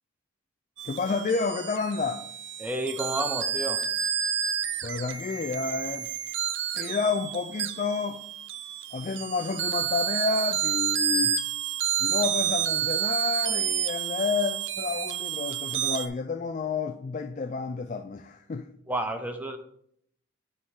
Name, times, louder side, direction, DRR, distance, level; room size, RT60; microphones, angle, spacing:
voice 1, 0.8-2.3 4.8-6.1 6.7-8.2 8.9-11.4 12.0-18.7, left 4 dB, 35° left, 0.3 m, -30 dB
sound 1, 0.8-16.1, right 9 dB, 65° right, 0.5 m, -30 dB
voice 2, 2.6-3.8 18.9-19.6, right 1 dB, 10° right, 0.7 m, -30 dB
9.4 x 4.8 x 3.6 m
head